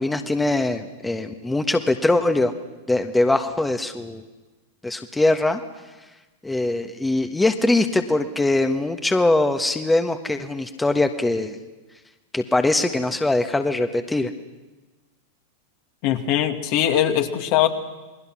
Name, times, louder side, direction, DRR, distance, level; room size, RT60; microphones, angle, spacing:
voice 1, 0.0-2.5 2.9-4.2 4.8-5.6 6.4-11.6 12.3-14.3, left 2 dB, 10° left, 6 dB, 1.4 m, -22 dB
voice 2, 16.0-17.7, left 11 dB, 55° left, 5 dB, 2.3 m, -21 dB
28.5 x 20.5 x 6.2 m, 1.2 s
hypercardioid pair, 95°, 0 cm